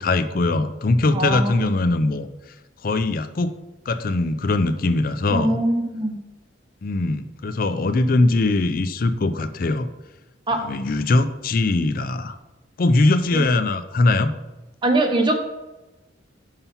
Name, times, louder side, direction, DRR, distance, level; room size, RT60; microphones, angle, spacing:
voice 1, 0.0-2.3 2.8-3.5 3.9-5.6 6.8-9.9 10.6-12.4 12.8-14.3, left 2 dB, 50° left, 11 dB, 0.5 m, -21 dB
voice 2, 1.1-1.6 5.3-6.2 10.5-10.6 13.3-13.4 14.8-15.4, right 2 dB, 25° right, 4 dB, 0.8 m, -22 dB
5.7 x 5.6 x 5.6 m, 1.0 s
head